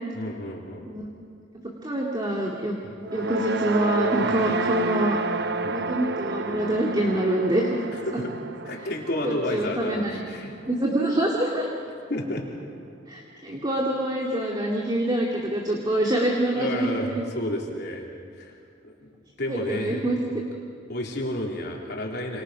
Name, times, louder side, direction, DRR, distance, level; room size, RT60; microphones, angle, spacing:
voice 1, 0.1-0.9 2.8-3.0 4.2-4.4 5.6-5.7 8.1-8.3 8.7-10.5 12.1-12.4 16.5-18.1 18.4-18.6 18.8-19.1 19.4-20.2 20.9-22.4, left 1 dB, 60° left, -1 dB, 3.9 m, -31 dB
voice 2, 1.8-2.7 3.1-5.2 5.7-7.8 8.1-8.2 9.2-10.2 10.7-11.7 13.1-17.2 19.5-20.4, right 1 dB, 25° right, -1 dB, 2.4 m, -25 dB
sound 1, 3.0-11.4, right 3 dB, 60° right, 0.9 m, -30 dB
28.0 x 28.0 x 5.9 m, 2.2 s
head